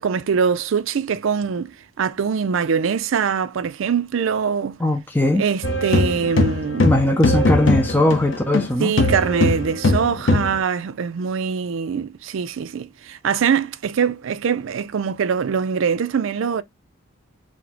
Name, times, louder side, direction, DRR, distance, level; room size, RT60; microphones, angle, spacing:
voice 1, 0.0-1.7 2.0-4.8 5.4-7.0 8.8-16.6, right 6 dB, 65° right, 0.4 m, -23 dB
voice 2, 4.8-5.4 6.8-8.9, left 1 dB, 10° left, 0.4 m, -19 dB
sound 1, 5.6-8.7 9.0-10.6, left 2 dB, 60° left, 0.6 m, -20 dB
4.2 x 2.1 x 4.2 m
head